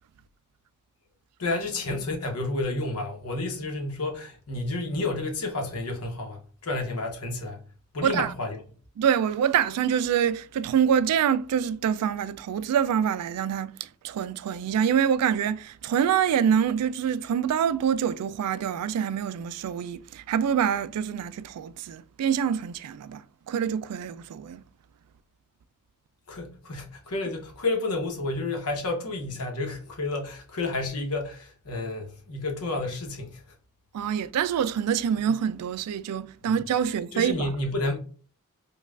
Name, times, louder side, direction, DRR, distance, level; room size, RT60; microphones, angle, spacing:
voice 1, 1.4-7.6 7.9-8.6 26.3-33.4 36.4-36.5 37.1-38.0, left 2 dB, 75° left, 0.9 m, -30 dB
voice 2, 8.0-8.3 9.0-24.6 33.9-37.5, right 8 dB, 85° right, 0.3 m, -26 dB
5.2 x 2.3 x 2.3 m
head